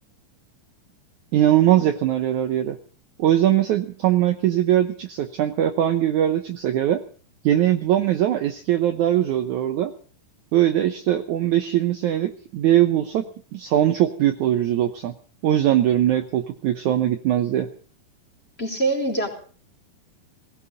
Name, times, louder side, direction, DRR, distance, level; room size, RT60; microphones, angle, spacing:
voice 1, 1.3-2.8 3.2-7.0 7.4-9.9 10.5-13.3 13.5-15.1 15.4-17.7, right 12 dB, 70° right, 7 dB, 2.0 m, -21 dB
voice 2, 18.6-19.3, right 2 dB, 15° left, 2 dB, 4.0 m, -24 dB
20.0 x 17.5 x 4.0 m, 0.43 s
omnidirectional pair, 4.3 m